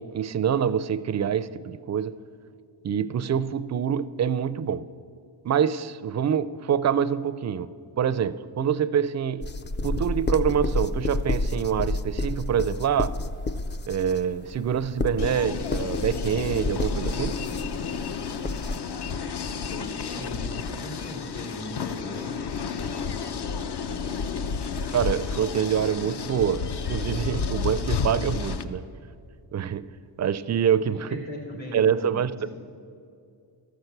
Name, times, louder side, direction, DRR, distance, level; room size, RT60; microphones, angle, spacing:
voice 1, 0.0-2.2 2.8-4.9 5.4-9.5 9.8-13.2 13.9-17.4 24.9-26.6 26.9-28.8 29.5-29.9 30.2-31.2 31.7-32.5, right 8 dB, 40° right, 0.4 m, -26 dB
sound 1, 9.4-18.8, left 2 dB, 25° left, 0.4 m, -30 dB
sound 2, 15.2-28.6, left 5 dB, 55° left, 0.7 m, -31 dB
voice 2, 19.5-22.3 31.1-32.5, left 1 dB, 75° left, 3.6 m, -38 dB
13.0 x 5.9 x 8.0 m
cardioid pair, 70°, 48 cm